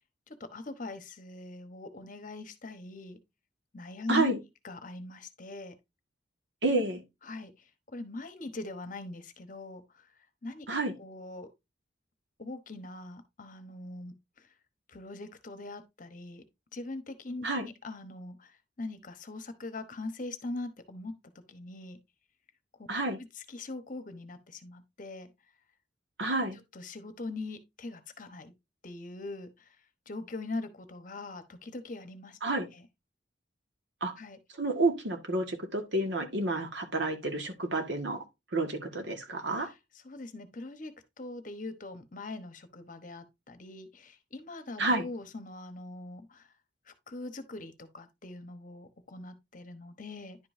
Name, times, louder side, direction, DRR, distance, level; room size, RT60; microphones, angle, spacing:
voice 1, 0.3-3.2 3.7-4.3 4.6-5.7 7.2-10.1 10.4-10.7 11.0-11.5 12.4-14.5 14.9-16.4 16.7-21.1 21.5-22.0 23.5-25.3 26.7-28.5 28.8-29.8 30.1-32.4 32.7-32.9 34.2-34.4 39.6-39.7 40.0-46.5 46.9-50.4, left 2 dB, 45° left, 1.0 m, -41 dB
voice 2, 4.1-4.4 6.6-7.0 10.7-10.9 17.4-17.7 22.9-23.2 26.2-26.6 32.4-32.7 34.0-34.1 34.6-38.2 38.5-39.7 44.8-45.1, right 2 dB, 70° right, 1.7 m, -29 dB
10.5 x 5.3 x 2.7 m
head